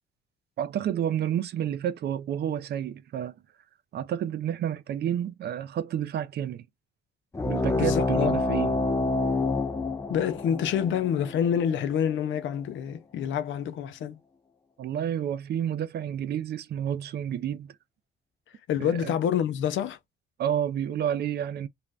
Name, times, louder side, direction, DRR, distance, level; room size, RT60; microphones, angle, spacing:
voice 1, 0.6-3.3 3.9-6.6 7.4-8.8 14.8-17.7 18.8-19.1 20.4-21.7, right 10 dB, 55° right, 0.4 m, -30 dB
sound 1, 7.3-12.4, left 3 dB, 15° left, 0.4 m, -28 dB
voice 2, 7.8-8.4 10.1-14.2 18.7-20.0, left 9 dB, 75° left, 0.5 m, -27 dB
2.5 x 2.1 x 3.3 m
cardioid pair, 90°, 20 cm